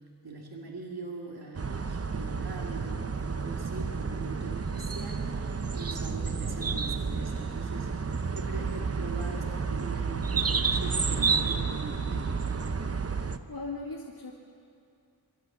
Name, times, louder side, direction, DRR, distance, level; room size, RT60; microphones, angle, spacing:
voice 1, 0.2-7.9 8.3-12.4, right 3 dB, 80° right, -1 dB, 2.2 m, -42 dB
sound 1, 1.5-13.4, right 5 dB, 40° right, 0.9 m, -30 dB
voice 2, 13.5-14.3, left 3 dB, 75° left, -2 dB, 2.1 m, -38 dB
24.0 x 13.5 x 8.5 m, 2.5 s
wide cardioid pair, 60°, 37 cm